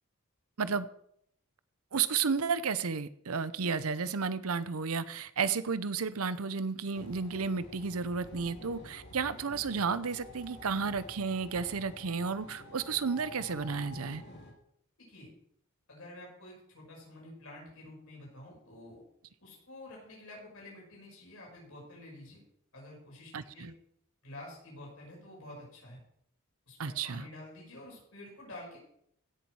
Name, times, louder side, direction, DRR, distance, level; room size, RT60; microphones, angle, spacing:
voice 1, 1.9-14.2 23.3-23.7 26.8-27.3, right 5 dB, 80° right, 15 dB, 0.7 m, -32 dB
sound 1, 6.9-14.5, left 2 dB, 50° left, 3.2 m, -49 dB
voice 2, 15.0-15.3 15.9-19.0 19.4-22.4 22.7-23.7 24.2-26.0 26.7-28.8, left 1 dB, 70° left, -3 dB, 5.9 m, -49 dB
16.5 x 7.1 x 4.7 m, 0.69 s
head